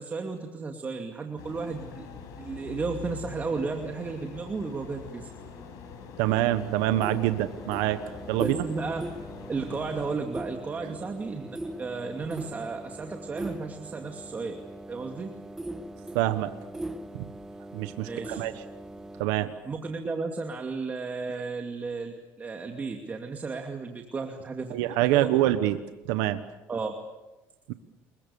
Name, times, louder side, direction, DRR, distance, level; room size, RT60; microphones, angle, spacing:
voice 1, 0.0-2.1 2.4-5.3 8.4-9.0 9.5-14.6 14.9-15.3 18.1-18.4 19.6-25.6 26.7-26.9, right 4 dB, 30° right, 3 dB, 2.5 m, -34 dB
sound 1, 1.4-10.2, left 6 dB, 70° left, 6.0 m, -44 dB
voice 2, 6.2-8.0 8.3-8.6 16.1-16.5 17.1-17.3 17.7-18.6 19.2-19.5 24.7-25.8 26.0-26.4 27.7-27.8, right 14 dB, 85° right, 10 dB, 1.3 m, -25 dB
sound 2, 6.3-19.2, right 1 dB, 10° right, 1.8 m, -40 dB
29.5 x 22.0 x 7.1 m, 1.1 s
supercardioid pair, 105°, 6 cm